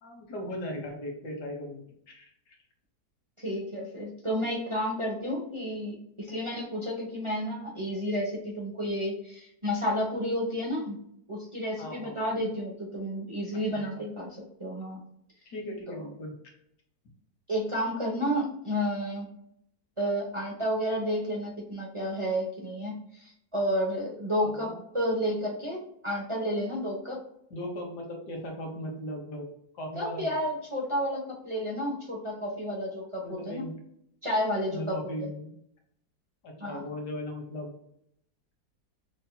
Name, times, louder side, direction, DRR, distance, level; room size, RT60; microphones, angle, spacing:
voice 1, 0.0-2.5 11.8-12.5 13.7-13.9 15.5-16.3 24.4-24.8 27.5-29.5 29.7-30.3 33.2-33.7 34.7-35.5 36.4-37.7, left 1 dB, 90° left, 0 dB, 1.8 m, -38 dB
voice 2, 3.4-11.0 11.3-15.0 15.9-16.0 17.5-19.3 20.0-25.8 26.0-27.2 29.9-33.6 34.2-34.9 36.6-36.8, equal, 25° right, -3 dB, 0.8 m, -31 dB
6.0 x 2.8 x 2.2 m, 0.72 s
omnidirectional pair, 1.7 m